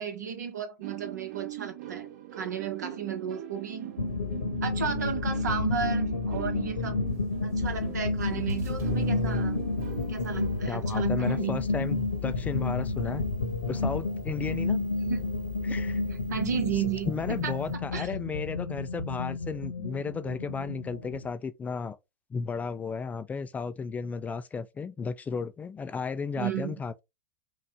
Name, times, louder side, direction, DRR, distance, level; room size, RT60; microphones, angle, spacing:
voice 1, 0.0-3.9 4.6-7.0 7.4-9.6 10.1-11.6 15.0-15.2 16.3-17.1 17.4-17.6 17.9-18.1 26.4-26.8, right 7 dB, 70° right, 1.4 m, -33 dB
sound 1, 0.8-11.0, right 15 dB, 55° right, 1.6 m, -41 dB
sound 2, 4.0-21.3, left 3 dB, 85° left, 1.4 m, -31 dB
sound 3, 7.1-17.7, equal, 30° right, 1.7 m, -43 dB
voice 2, 10.7-13.2 13.7-14.8 15.6-16.0 17.1-22.0 22.3-27.0, left 5 dB, 15° left, 0.4 m, -34 dB
5.8 x 2.5 x 3.4 m
figure-of-eight pair, 100°, 10 cm